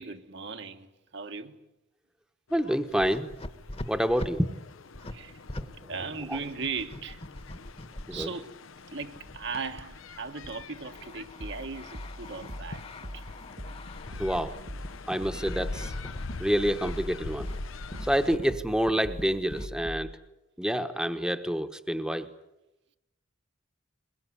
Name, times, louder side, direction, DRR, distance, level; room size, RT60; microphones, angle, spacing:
voice 1, 0.0-1.6 5.1-5.4 5.9-7.2 8.1-8.5 8.9-12.9 13.1-13.3, right 4 dB, 60° right, 1.5 m, -38 dB
sound 1, 2.5-18.4, left 3 dB, 85° left, 0.8 m, -44 dB
voice 2, 2.5-3.3 3.9-4.5 5.6-5.7 6.3-6.4 8.1-8.3 14.2-14.5 15.1-15.9 16.4-17.5 18.0-20.1 20.6-22.3, equal, 5° right, 1.1 m, -27 dB
sound 2, 2.9-5.7 6.0-8.3 9.0-16.4 16.7-17.1 17.4-17.6 17.9-19.7, left 1 dB, 30° left, 1.3 m, -43 dB
sound 3, 11.4-20.1, equal, 40° right, 1.5 m, -42 dB
22.0 x 22.0 x 9.7 m
head